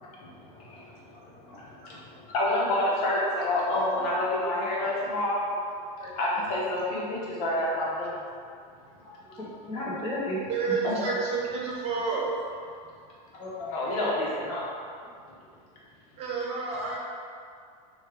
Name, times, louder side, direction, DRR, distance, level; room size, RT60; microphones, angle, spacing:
voice 1, 0.0-0.8 1.1-1.2 1.5-5.4 6.2-8.2 10.8-10.9 13.7-14.6, left 1 dB, 70° left, -5 dB, 0.9 m, -28 dB
voice 2, 1.2-1.6 3.4-3.5 4.8-4.9 6.0-6.1 9.0-10.5 13.4-13.7, left 1 dB, 25° left, -7 dB, 0.8 m, -35 dB
voice 3, 10.5-12.4 16.2-17.0, right 4 dB, 35° right, -3 dB, 0.5 m, -30 dB
3.1 x 2.4 x 3.3 m, 2.2 s
supercardioid pair, 150°, 19 cm